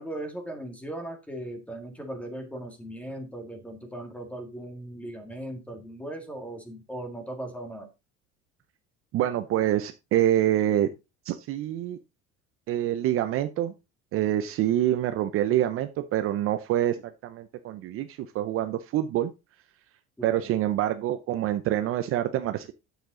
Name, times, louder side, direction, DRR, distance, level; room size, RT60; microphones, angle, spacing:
voice 1, 0.0-7.9 20.2-20.5, right 1 dB, 5° left, 5 dB, 1.9 m, -38 dB
voice 2, 9.1-10.9 11.3-12.0 12.7-13.7 14.1-19.3 20.2-22.7, right 12 dB, 45° right, 9 dB, 0.7 m, -26 dB
9.2 x 7.0 x 3.8 m, 0.25 s
cardioid pair, 160°, 32 cm